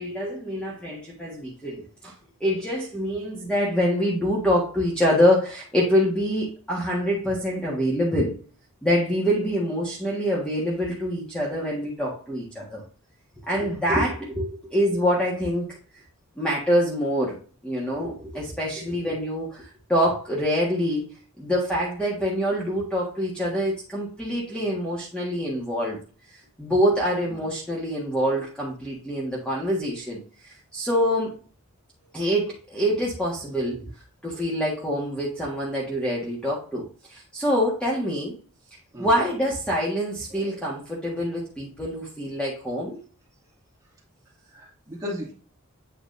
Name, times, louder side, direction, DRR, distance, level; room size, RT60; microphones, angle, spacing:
voice 1, 0.0-2.1 2.4-8.3 8.8-12.8 13.4-15.8 16.4-17.4 17.6-21.0 21.4-26.0 26.3-31.3 32.1-33.8 34.2-38.3 39.0-43.0, equal, 5° left, -5 dB, 1.5 m, -25 dB
voice 2, 40.3-40.7 44.5-45.3, left 1 dB, 15° right, -4 dB, 2.5 m, -36 dB
8.5 x 5.0 x 2.6 m, 0.39 s
head